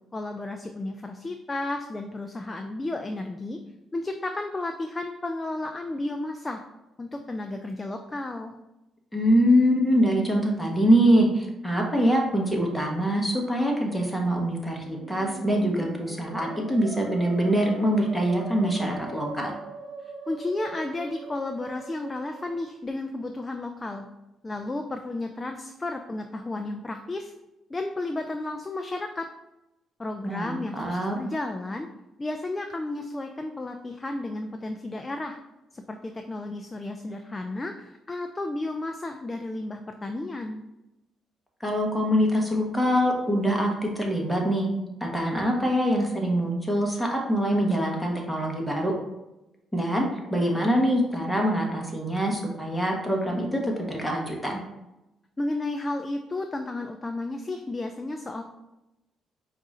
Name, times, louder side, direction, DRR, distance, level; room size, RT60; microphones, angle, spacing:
voice 1, 0.1-3.6 3.9-6.6 7.0-8.6 20.3-24.1 24.4-27.3 27.7-29.3 30.0-31.9 32.2-35.4 35.7-40.6 55.4-58.4, left 2 dB, 20° left, 5 dB, 0.3 m, -33 dB
voice 2, 9.1-19.5 30.2-31.2 41.6-44.7 45.0-48.9 49.7-54.6, equal, 5° left, 0 dB, 1.1 m, -24 dB
Musical instrument, 14.6-22.7, right 3 dB, 85° right, 0.7 m, -41 dB
4.7 x 2.5 x 4.1 m, 0.95 s
cardioid pair, 90°, 0 cm